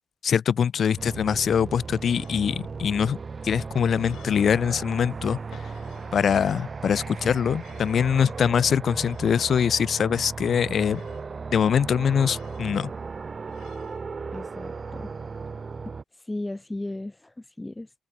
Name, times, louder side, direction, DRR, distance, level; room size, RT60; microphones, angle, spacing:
voice 1, 0.2-3.2 3.4-5.6 6.1-11.0 11.5-12.9, left 7 dB, 55° left, 0.8 m, -23 dB
sound 1, 1.0-16.0, right 4 dB, 35° right, 0.7 m, -36 dB
sound 2, 2.0-2.6 3.6-4.6 5.5-6.2 7.5-8.2 9.0-9.7 10.6-11.3 12.2-12.7 13.5-14.0, left 12 dB, 80° left, 5.7 m, -51 dB
voice 2, 14.3-15.1 16.2-17.9, left 2 dB, 10° left, 4.5 m, -35 dB
cardioid pair, 90°, 0 cm